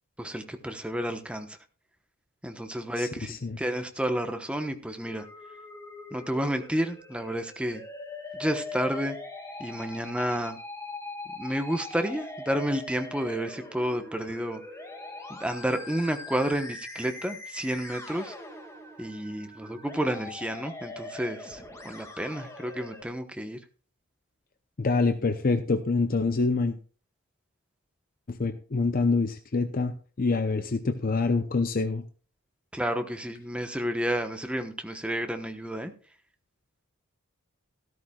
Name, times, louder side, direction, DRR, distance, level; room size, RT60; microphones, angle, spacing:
voice 1, 0.2-1.6 2.4-5.3 6.1-7.8 8.3-9.2 9.6-10.6 11.3-14.6 15.3-18.3 19.0-23.6 32.7-35.9, equal, 5° right, 6 dB, 1.0 m, -31 dB
voice 2, 3.0-3.6 24.8-26.8 28.3-32.0, left 3 dB, 40° left, 8 dB, 0.7 m, -26 dB
Musical instrument, 5.1-23.0, left 2 dB, 15° left, 2.1 m, -42 dB
14.0 x 13.0 x 2.4 m, 0.39 s
head